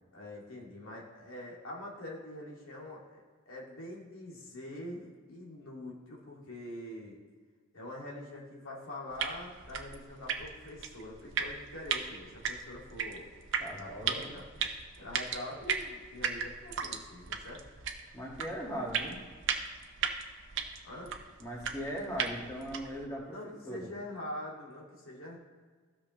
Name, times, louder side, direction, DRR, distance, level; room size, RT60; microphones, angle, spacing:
voice 1, 0.1-7.2 7.7-13.3 13.8-14.4 15.0-17.6 20.8-21.1 23.3-25.4, left 1 dB, 85° left, -3 dB, 2.3 m, -44 dB
sound 1, 9.1-23.0, right 6 dB, 65° right, 0.8 m, -37 dB
voice 2, 13.6-14.3 18.1-19.2 21.4-23.4 23.7-23.9, equal, 15° left, -4 dB, 2.0 m, -39 dB
15.5 x 6.1 x 3.1 m, 1.5 s
head